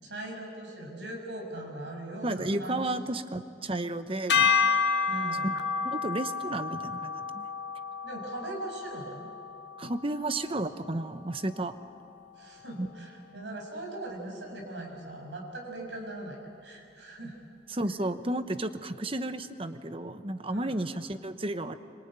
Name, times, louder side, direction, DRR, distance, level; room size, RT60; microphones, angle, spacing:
voice 1, 0.0-3.2 5.1-5.5 8.0-9.3 12.4-17.4 20.5-20.8, right 1 dB, 80° right, 1 dB, 6.6 m, -40 dB
voice 2, 2.2-4.7 5.4-5.5 5.8-7.5 9.8-11.7 12.8-12.9 13.3-13.4 17.7-21.8, right 1 dB, 30° right, 10 dB, 1.0 m, -33 dB
sound 1, 4.3-10.6, left 5 dB, 70° left, 1.4 m, -30 dB
26.0 x 25.0 x 9.0 m, 2.5 s
head